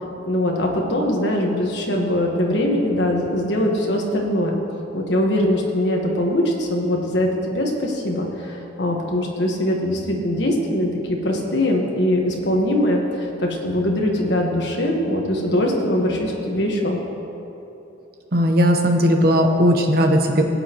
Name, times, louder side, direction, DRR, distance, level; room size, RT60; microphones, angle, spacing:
voice 1, 0.2-4.6 4.9-17.0, left 1 dB, 65° left, 0 dB, 1.4 m, -22 dB
voice 2, 18.3-20.4, equal, 55° right, 3 dB, 0.9 m, -17 dB
17.5 x 8.2 x 3.0 m, 2.9 s
head